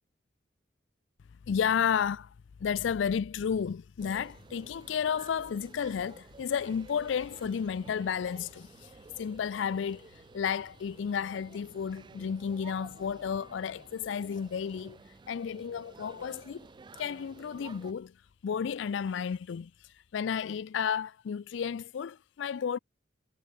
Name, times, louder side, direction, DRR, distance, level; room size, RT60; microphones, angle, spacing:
voice 1, 1.5-2.3 2.6-8.9 9.2-15.0 15.3-16.7 17.0-18.1 18.4-19.7 20.1-22.8, left 7 dB, 75° left, 0.4 m, -32 dB
sound 1, 4.0-17.9, right 4 dB, 25° right, 0.3 m, -53 dB
head